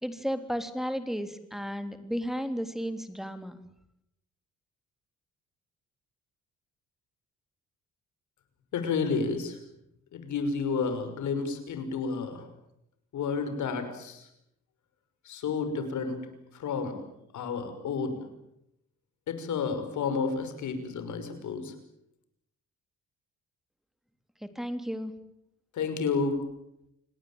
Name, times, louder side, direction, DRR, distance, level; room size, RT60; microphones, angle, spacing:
voice 1, 0.0-3.6 24.4-25.1, equal, ahead, 9 dB, 3.2 m, -33 dB
voice 2, 8.7-9.6 10.1-12.5 13.1-14.3 15.2-16.3 16.5-17.0 17.3-18.3 19.3-21.7 25.7-26.4, left 5 dB, 75° left, 8 dB, 6.0 m, -31 dB
28.5 x 19.0 x 8.9 m, 0.80 s
cardioid pair, 90°, 30 cm